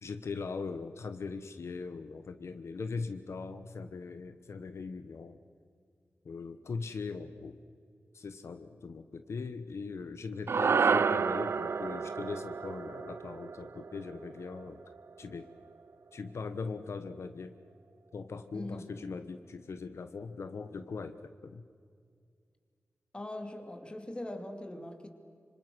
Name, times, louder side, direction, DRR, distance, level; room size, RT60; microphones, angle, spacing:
voice 1, 0.0-5.4 6.2-7.6 8.1-14.8 15.2-15.5 16.1-17.6 18.1-21.6, left 4 dB, 75° left, 10 dB, 1.0 m, -40 dB
sound 1, 10.5-14.9, right 5 dB, 65° right, 0.5 m, -30 dB
voice 2, 18.5-18.9 23.1-25.1, left 1 dB, 20° left, 5 dB, 2.6 m, -41 dB
26.0 x 25.5 x 6.2 m, 2.3 s
wide cardioid pair, 120°, 5 cm